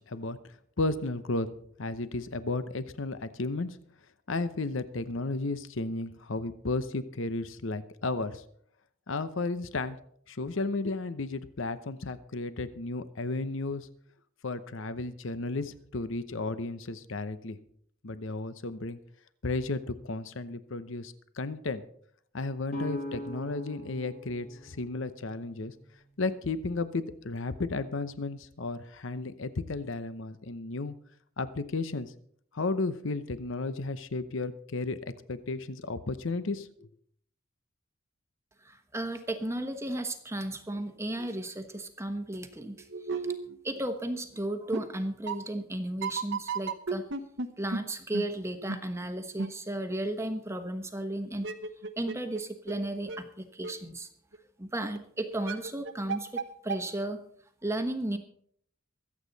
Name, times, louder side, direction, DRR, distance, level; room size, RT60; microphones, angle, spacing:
voice 1, 0.1-1.5 1.8-3.8 4.3-8.4 9.1-10.0 10.3-13.9 14.4-17.6 18.0-19.0 19.4-21.8 22.3-25.7 26.2-31.0 31.4-32.1 32.5-35.0 35.3-36.9, left 3 dB, 65° left, 13 dB, 0.8 m, -33 dB
sound 1, 22.7-26.5, left 1 dB, 40° left, 3.5 m, -41 dB
voice 2, 38.6-42.9 43.6-47.1 47.6-51.5 52.0-54.1 54.6-57.2 57.6-58.2, right 1 dB, 15° right, 6 dB, 1.1 m, -34 dB
sound 2, 40.8-40.9 41.2-41.3 41.7-41.8 42.6-44.0 44.3-44.4 44.7-44.8 45.3-45.4 46.0-47.5 47.7-47.8 48.1-48.2 48.7-48.8 49.4-49.5 51.3-52.4 52.7-52.8 53.1-53.2 53.6-53.7 54.3-54.4 55.0-55.1 55.3-56.4 56.7-56.8, right 4 dB, 55° right, 1.0 m, -33 dB
24.0 x 8.4 x 4.0 m, 0.64 s
head